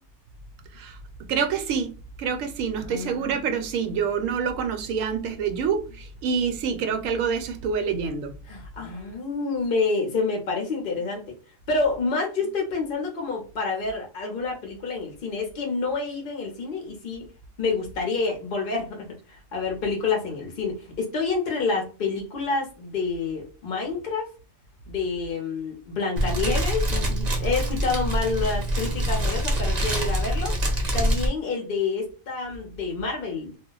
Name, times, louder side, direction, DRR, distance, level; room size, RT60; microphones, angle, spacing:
voice 1, 1.3-1.9 2.2-8.4, right 6 dB, 75° right, 0.9 m, -27 dB
voice 2, 2.8-3.3 8.5-11.4 11.7-17.3 17.6-24.3 24.9-30.6 30.9-33.6, left 4 dB, 50° left, 0.7 m, -28 dB
Fire, 26.2-31.3, right 1 dB, 40° right, 0.6 m, -25 dB
2.3 x 2.0 x 3.8 m
omnidirectional pair, 1.4 m